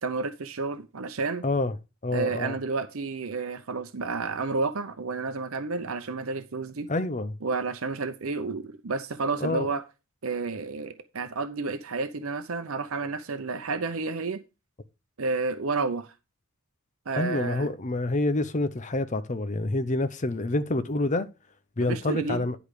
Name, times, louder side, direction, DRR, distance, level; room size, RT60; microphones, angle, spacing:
voice 1, 0.0-1.4 2.1-6.9 7.4-9.8 10.2-14.4 15.2-16.1 17.1-17.7 21.8-22.5, right 4 dB, 70° right, 0.7 m, -31 dB
voice 2, 1.4-1.7 2.0-2.6 6.9-7.3 9.4-9.7 17.2-21.3 21.8-22.6, left 2 dB, 35° left, 0.7 m, -27 dB
10.5 x 5.0 x 4.9 m
head